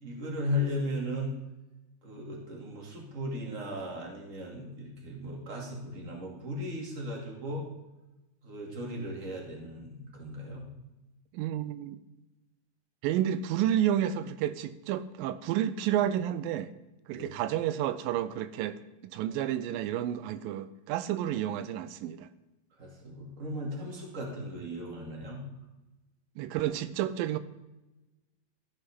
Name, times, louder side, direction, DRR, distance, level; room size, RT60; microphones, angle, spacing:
voice 1, 0.0-1.4 2.0-7.6 8.4-10.7 17.1-17.3 22.8-25.4, left 1 dB, 25° right, -1 dB, 2.4 m, -36 dB
voice 2, 11.3-12.0 13.0-16.7 17.1-18.8 19.0-22.3 26.4-27.4, right 11 dB, 85° right, 13 dB, 2.3 m, -30 dB
15.0 x 9.9 x 3.6 m, 1.0 s
omnidirectional pair, 3.9 m